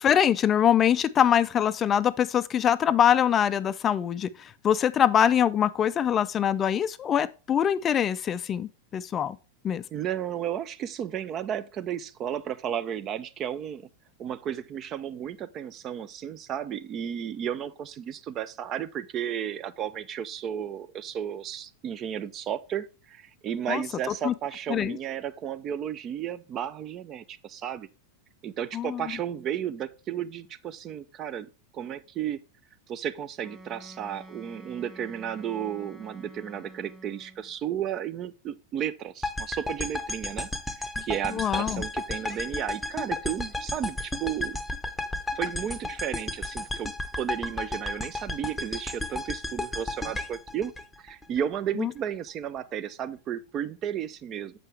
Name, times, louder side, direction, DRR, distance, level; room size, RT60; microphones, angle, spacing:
voice 1, 0.0-9.4 9.6-9.8 23.7-23.8 24.2-24.3 24.7-25.0 28.7-29.0 41.3-41.8 51.8-51.9, left 9 dB, 25° left, 0.4 m, -23 dB
voice 2, 9.9-13.9 14.2-27.9 28.4-32.4 32.9-40.5 40.8-44.6 45.4-50.7 51.0-54.5, right 9 dB, 30° right, 0.5 m, -33 dB
Wind instrument woodwind instrument, 33.4-37.6, right 2 dB, 15° right, 1.8 m, -48 dB
sound 1, 39.2-51.4, left 2 dB, 5° left, 0.8 m, -33 dB
7.3 x 5.4 x 3.3 m
figure-of-eight pair, 90°, 0 cm